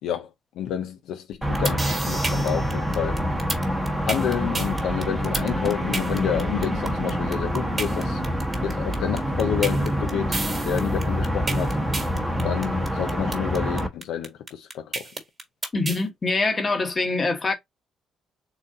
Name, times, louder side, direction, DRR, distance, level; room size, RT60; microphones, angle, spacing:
voice 1, 0.6-3.2 4.0-8.2 8.6-11.8 12.4-15.1, left 9 dB, 85° left, 0.5 m, -29 dB
sound 1, 1.3-16.0, right 3 dB, 25° right, 1.4 m, -31 dB
sound 2, 1.4-13.9, equal, 10° right, 1.0 m, -26 dB
voice 2, 15.7-17.5, left 3 dB, 35° left, 1.1 m, -24 dB
4.0 x 2.3 x 3.7 m
cardioid pair, 90°, 0 cm